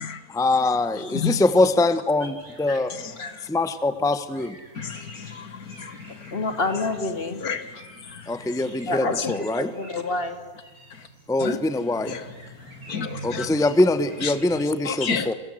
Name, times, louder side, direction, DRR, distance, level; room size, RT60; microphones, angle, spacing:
voice 1, 0.3-2.9 3.5-4.6 8.3-9.7 11.3-12.1 13.2-15.3, left 2 dB, 5° left, 1.0 m, -23 dB
voice 2, 1.0-1.4 2.9-3.3 4.7-6.4 7.4-8.6 9.0-9.3 10.9-11.1 11.4-11.6 12.0-12.3 12.9-13.5 14.2-14.4 14.8-15.3, left 6 dB, 80° left, 1.9 m, -32 dB
sound 1, 2.2-14.7, right 2 dB, 60° right, 6.5 m, -46 dB
voice 3, 6.3-7.5 8.9-10.4 12.9-13.2, left 3 dB, 40° left, 2.5 m, -29 dB
28.5 x 25.5 x 7.9 m
omnidirectional pair, 1.6 m